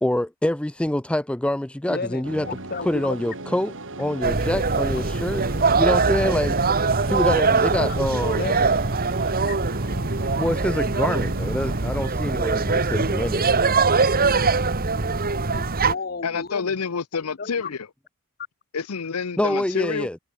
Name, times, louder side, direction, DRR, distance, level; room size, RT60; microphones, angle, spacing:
voice 1, 0.0-2.5 2.9-6.6 7.1-8.4 10.4-13.5 19.4-20.2, left 1 dB, 5° left, 0.4 m, -26 dB
voice 2, 1.9-3.1 8.3-8.7 15.2-16.7 17.4-17.7, left 4 dB, 45° left, 1.6 m, -33 dB
sound 1, 2.2-11.9, right 2 dB, 60° right, 5.6 m, -37 dB
sound 2, 4.2-15.9, right 4 dB, 40° right, 1.5 m, -22 dB
voice 3, 16.2-17.9 18.7-20.1, left 5 dB, 85° left, 0.8 m, -28 dB
head